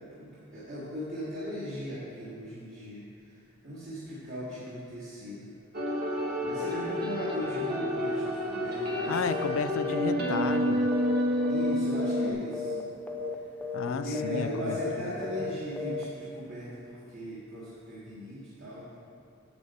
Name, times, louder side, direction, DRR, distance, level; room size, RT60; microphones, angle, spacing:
voice 1, 0.1-3.0 3.6-5.5 6.4-9.2 11.5-12.8 13.8-18.9, equal, 65° right, -12 dB, 1.8 m, -38 dB
sound 1, 5.7-12.3, equal, 50° right, 1.3 m, -29 dB
voice 2, 9.1-10.9 13.7-15.1 15.4-15.5, left 5 dB, 70° left, 10 dB, 0.4 m, -33 dB
sound 2, 9.3-9.6 9.8-10.1 10.4-11.7 12.0-12.3 12.5-12.8 13.1-13.3 13.6-13.9 14.1-14.4 14.7-15.0 15.2-15.5 15.8-16.0, left 4 dB, 10° left, 0.5 m, -34 dB
8.7 x 6.7 x 4.2 m, 2.6 s
head